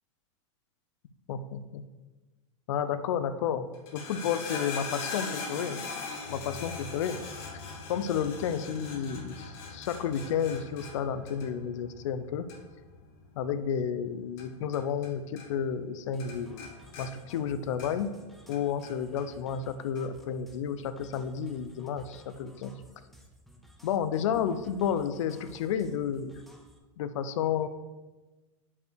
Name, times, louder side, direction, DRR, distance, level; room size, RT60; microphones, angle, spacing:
voice 1, 1.3-1.8 2.7-3.7 3.9-5.8 6.3-7.2 7.9-12.5 13.4-18.2 18.5-22.7 23.8-26.3 27.0-27.7, left 8 dB, 65° left, 12 dB, 0.6 m, -31 dB
sound 1, 3.7-15.1 15.4-15.9 16.2-18.2 18.5-19.3 19.9-20.0, left 4 dB, 45° left, 1.2 m, -41 dB
sound 2, 16.1-26.8, equal, ahead, 0.5 m, -55 dB
5.4 x 4.6 x 6.3 m, 1.2 s
supercardioid pair, 160°, 17 cm